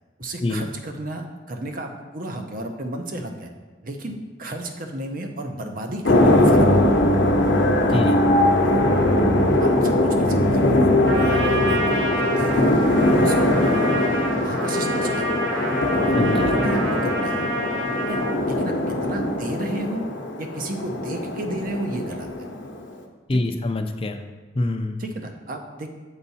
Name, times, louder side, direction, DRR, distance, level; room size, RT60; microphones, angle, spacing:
voice 1, 0.2-3.5 3.8-6.8 7.9-8.1 8.6-8.8 9.6-14.1 14.4-15.4 15.9-16.1 16.5-17.5 18.1-20.0 20.4-22.5 23.3-23.6 25.0-25.9, right 1 dB, 45° right, 5 dB, 0.7 m, -32 dB
sound 1, 6.0-22.9, left 1 dB, 65° left, 0.8 m, -20 dB
Trumpet, 11.0-18.4, right 1 dB, 70° right, 1.0 m, -29 dB
voice 2, 16.1-16.5 23.3-24.2 24.5-25.0, left 2 dB, 30° left, 6 dB, 0.4 m, -25 dB
7.2 x 4.6 x 4.1 m, 1.3 s
head